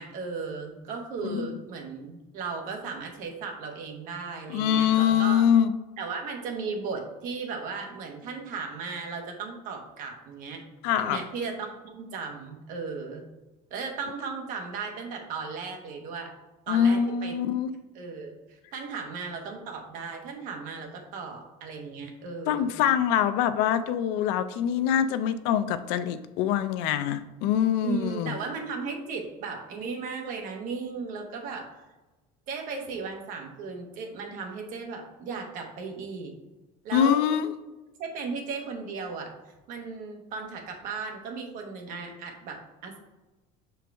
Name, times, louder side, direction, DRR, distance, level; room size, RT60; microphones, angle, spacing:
voice 1, 0.0-5.4 6.0-10.6 11.0-13.3 13.7-16.3 16.7-17.3 17.9-22.7 27.8-31.8 32.5-36.3 36.8-37.2 38.0-39.3 39.7-43.0, right 4 dB, 50° right, 2 dB, 1.2 m, -36 dB
voice 2, 1.2-1.6 4.5-5.7 10.8-11.2 16.7-17.7 22.5-28.3 36.9-37.5, left 9 dB, 65° left, 12 dB, 0.4 m, -24 dB
6.2 x 4.5 x 3.4 m, 1.1 s
cardioid pair, 175°, 18 cm